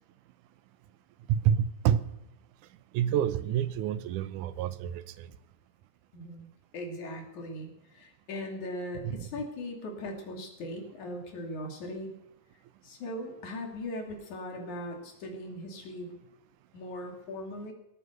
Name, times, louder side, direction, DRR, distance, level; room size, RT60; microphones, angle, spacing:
voice 1, 1.3-2.1 2.9-5.3 9.0-9.3, right 9 dB, 90° right, 15 dB, 2.3 m, -28 dB
voice 2, 6.1-12.1 12.8-16.2 16.7-17.7, left 1 dB, 75° left, 2 dB, 4.1 m, -39 dB
17.5 x 9.5 x 6.7 m, 0.88 s
omnidirectional pair, 3.4 m